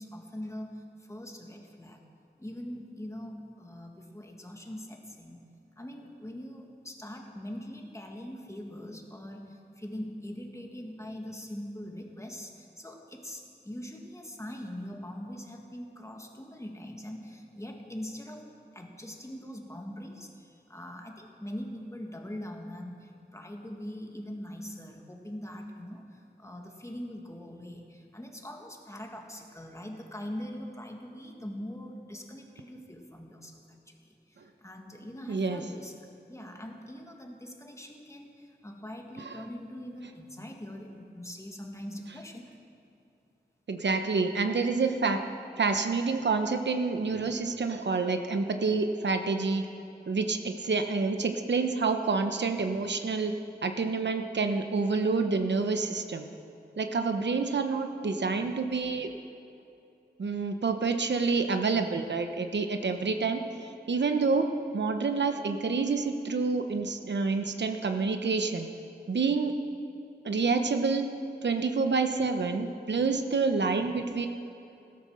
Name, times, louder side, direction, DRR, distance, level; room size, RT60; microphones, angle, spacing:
voice 1, 0.0-2.0 2.4-5.4 5.8-36.0 36.3-42.5, equal, 15° left, 2 dB, 1.9 m, -42 dB
voice 2, 35.3-35.6 39.2-39.4 43.7-45.2 45.6-49.6 50.1-53.3 53.6-56.3 56.8-59.1 60.2-64.5 64.7-68.7 69.1-69.5 70.2-71.1 71.4-74.3, right 4 dB, 75° right, 6 dB, 1.0 m, -28 dB
16.0 x 13.5 x 6.5 m, 2.7 s
wide cardioid pair, 95°, 18 cm